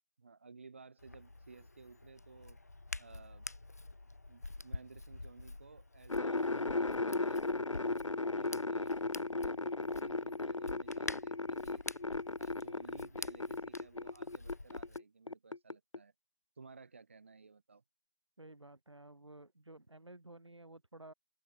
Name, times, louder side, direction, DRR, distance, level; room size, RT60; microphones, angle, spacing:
voice 1, 0.2-2.6 3.0-3.4 4.3-7.4 7.7-11.9 12.4-16.1 16.6-17.8, right 4 dB, 25° right, 1.5 m, -57 dB
Hands, 1.0-15.0, left 2 dB, 30° left, 0.6 m, -48 dB
sound 1, 6.1-15.0 15.3-16.0, left 3 dB, 80° left, 0.7 m, -36 dB
voice 2, 18.4-21.1, right 2 dB, 65° right, 6.4 m, -54 dB
open air
figure-of-eight pair, 165°, 16 cm